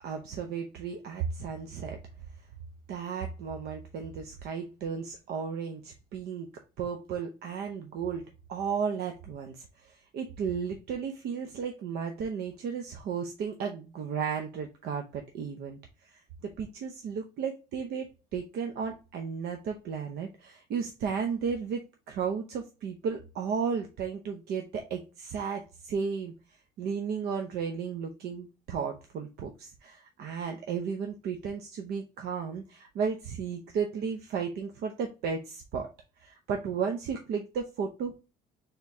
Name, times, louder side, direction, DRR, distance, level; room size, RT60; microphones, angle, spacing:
voice 1, 0.0-2.0 2.9-6.5 6.8-15.8 16.0-21.8 22.1-26.3 26.8-35.9 36.2-38.2, right 6 dB, 70° right, 4 dB, 0.7 m, -34 dB
4.4 x 3.7 x 2.7 m, 0.30 s
cardioid pair, 110°, 17 cm